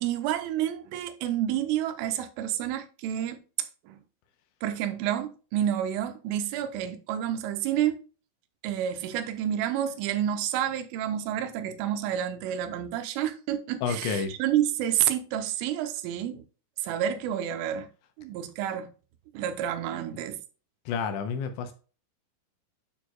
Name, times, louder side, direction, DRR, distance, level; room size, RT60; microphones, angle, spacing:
voice 1, 0.0-3.4 3.9-4.0 4.6-8.0 8.6-16.4 16.8-17.9 18.2-18.9 19.3-20.4, right 11 dB, 90° right, 3.2 m, -29 dB
voice 2, 13.8-14.3 20.9-21.7, left 6 dB, 80° left, 3.0 m, -29 dB
9.4 x 6.6 x 2.3 m
omnidirectional pair, 5.7 m